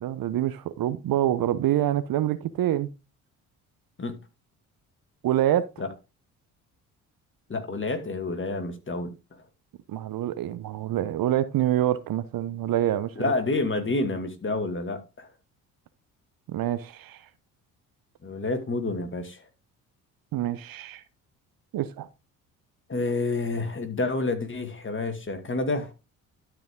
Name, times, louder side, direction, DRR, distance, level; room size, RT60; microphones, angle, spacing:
voice 1, 0.0-2.9 5.2-5.7 9.9-13.3 16.5-17.2 20.3-21.0 21.7-22.1, right 12 dB, 55° right, 0.9 m, -26 dB
voice 2, 7.5-9.1 13.2-15.3 18.2-19.4 22.9-25.9, left 3 dB, 30° left, 2.2 m, -29 dB
12.5 x 5.0 x 3.7 m
hypercardioid pair, 55°, 42 cm